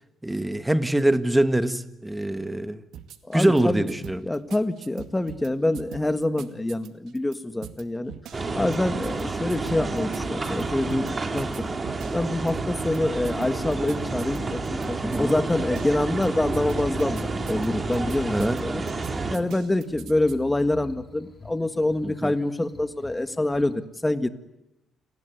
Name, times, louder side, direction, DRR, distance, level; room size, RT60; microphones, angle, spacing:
voice 1, 0.2-2.8 3.3-4.2 15.0-15.4 18.3-18.6 22.0-22.3, right 1 dB, 10° right, 11 dB, 1.6 m, -24 dB
sound 1, 2.9-3.6 3.9-5.5 5.7-7.4 7.6-7.8 8.1-8.8 9.0-9.2 9.5-11.1 11.4-12.5 12.8-13.0 13.2-14.9 15.1-15.3 15.6-16.3 16.5-17.7 17.9-18.6 18.9-20.3, right 10 dB, 75° right, 2.1 m, -42 dB
voice 2, 3.3-3.9 4.2-8.1 8.5-11.7 12.1-18.8 19.3-24.3, left 1 dB, 10° left, 10 dB, 1.8 m, -26 dB
sound 2, 8.3-19.4, right 3 dB, 25° right, 3.0 m, -30 dB
sound 3, 15.1-23.7, left 4 dB, 30° left, 3.2 m, -46 dB
29.5 x 19.5 x 9.4 m, 0.92 s
cardioid pair, 110°, 0 cm